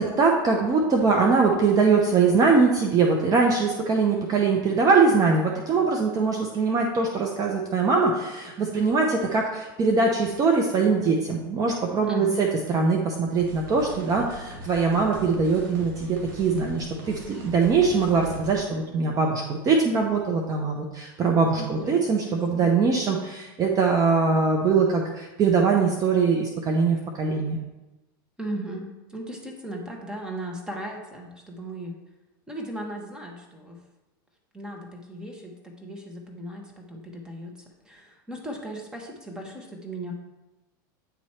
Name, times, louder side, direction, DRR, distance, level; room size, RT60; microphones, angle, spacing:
voice 1, 0.0-27.6, right 4 dB, 30° right, 1 dB, 0.8 m, -22 dB
voice 2, 12.0-12.5 21.5-22.7 28.4-32.0 32.5-33.8 34.5-37.5 37.8-40.1, right 1 dB, 5° right, 1 dB, 1.2 m, -37 dB
sound 1, 13.4-18.6, equal, 70° right, 1.9 m, -39 dB
9.1 x 3.1 x 4.3 m, 1.1 s
supercardioid pair, 115°, 12 cm